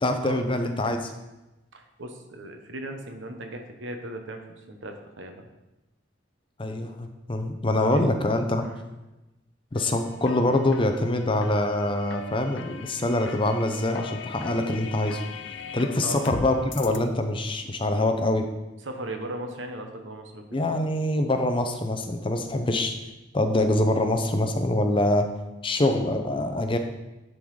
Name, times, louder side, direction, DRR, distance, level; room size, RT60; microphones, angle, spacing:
voice 1, 0.0-1.1 6.6-8.7 9.7-15.2 15.7-18.5 20.5-22.9 23.3-25.3 25.6-26.8, left 1 dB, 25° left, 6 dB, 0.6 m, -24 dB
voice 2, 1.7-5.5 7.9-8.0 8.7-8.8 16.0-16.2 18.8-20.7, right 1 dB, 85° right, 5 dB, 1.0 m, -37 dB
sound 1, 9.7-17.0, left 5 dB, 75° left, 0.5 m, -39 dB
10.5 x 3.9 x 4.7 m, 1.0 s
head